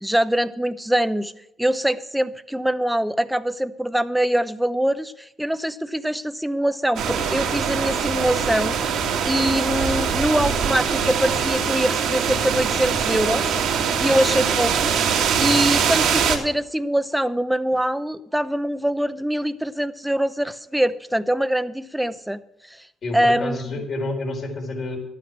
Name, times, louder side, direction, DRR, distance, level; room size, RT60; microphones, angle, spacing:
voice 1, 0.0-1.3 1.6-13.6 14.0-14.9 15.4-22.4 23.1-23.6, equal, 5° right, 13 dB, 0.8 m, -23 dB
sound 1, 7.0-16.4, right 7 dB, 75° right, 2.0 m, -22 dB
voice 2, 23.0-25.0, left 2 dB, 50° left, 2 dB, 4.3 m, -29 dB
12.0 x 9.1 x 6.3 m, 0.82 s
supercardioid pair, 65°, 0 cm